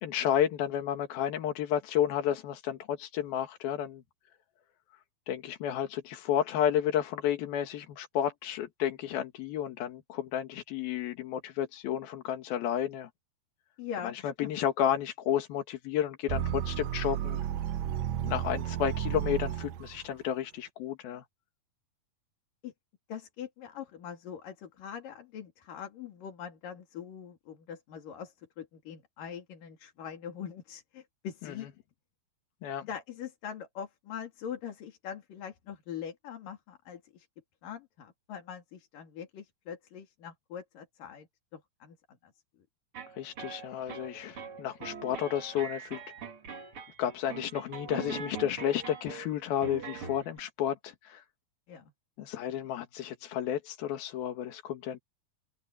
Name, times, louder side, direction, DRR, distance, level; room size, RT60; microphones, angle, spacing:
voice 1, 0.0-4.0 5.3-13.1 14.0-17.4 18.2-21.2 31.4-31.5 32.6-32.9 43.1-46.0 47.0-51.2 52.2-55.0, left 10 dB, 85° left, 3.6 m, -32 dB
voice 2, 13.8-14.5 22.6-22.7 23.1-31.7 32.9-37.3 37.6-41.3 41.5-42.0 42.2-42.3 51.7-51.9, left 8 dB, 70° left, 4.3 m, -42 dB
sound 1, 16.3-20.1, right 11 dB, 75° right, 1.6 m, -33 dB
sound 2, 42.9-50.4, right 6 dB, 45° right, 2.6 m, -43 dB
open air
omnidirectional pair, 4.2 m